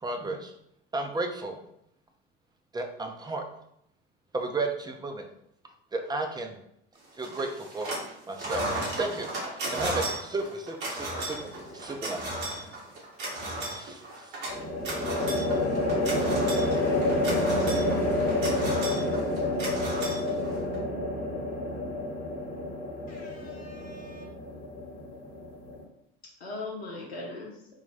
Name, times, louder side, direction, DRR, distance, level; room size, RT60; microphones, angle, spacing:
voice 1, 0.0-0.5 0.9-1.6 2.7-3.4 4.3-5.2 5.9-6.6 7.2-7.9 8.3-8.6 9.0-11.4 11.7-12.2 13.7-14.0, right 2 dB, 15° right, 4 dB, 0.6 m, -33 dB
sound 1, 7.2-8.1 8.4-20.8, right 1 dB, 65° right, 1.4 m, -35 dB
sound 2, 11.4-11.9 14.5-25.8, left 1 dB, 45° left, 1.2 m, -29 dB
voice 2, 15.8-19.5, left 2 dB, 30° left, -3 dB, 0.7 m, -45 dB
voice 3, 23.1-24.2 26.4-27.5, left 2 dB, 85° left, -2 dB, 0.8 m, -40 dB
3.6 x 2.2 x 4.1 m, 0.77 s
hypercardioid pair, 65°, 30 cm